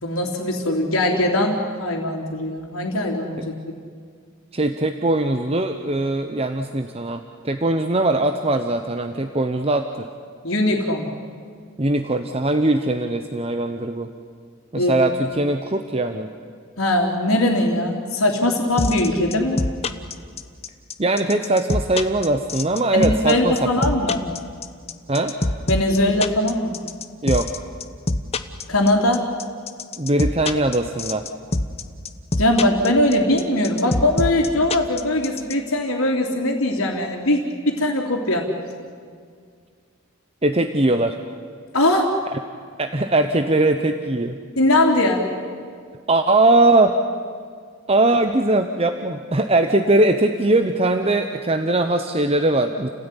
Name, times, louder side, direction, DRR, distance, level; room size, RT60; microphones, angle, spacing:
voice 1, 0.0-3.5 10.4-11.1 14.7-14.9 16.8-19.6 22.9-24.2 25.7-26.8 28.7-29.3 32.4-38.5 41.7-42.1 44.6-45.3, left 1 dB, 80° left, -5 dB, 3.2 m, -20 dB
voice 2, 4.5-10.1 11.8-14.1 14.7-16.3 21.0-23.8 25.1-25.3 27.2-27.5 30.0-31.2 40.4-41.2 42.3-42.4 42.8-44.4 46.1-47.0 47.9-52.9, right 2 dB, 30° right, 7 dB, 0.9 m, -20 dB
sound 1, 18.8-35.5, left 2 dB, 30° left, 1.0 m, -24 dB
29.5 x 17.0 x 10.0 m, 2.1 s
head